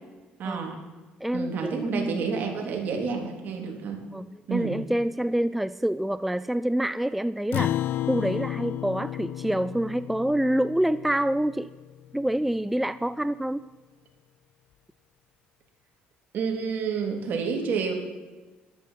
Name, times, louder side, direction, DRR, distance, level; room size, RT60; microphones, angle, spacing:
voice 1, 0.4-0.8 1.3-4.0 4.5-4.8 16.3-17.9, right 5 dB, 60° right, 2 dB, 3.6 m, -29 dB
voice 2, 1.2-2.3 4.1-7.8 8.1-11.7 12.1-13.6, right 1 dB, 5° right, 15 dB, 0.4 m, -27 dB
Acoustic guitar, 7.5-12.2, left 13 dB, 70° left, 0.4 m, -32 dB
14.0 x 12.5 x 6.0 m, 1.3 s
cardioid pair, 100°, 4 cm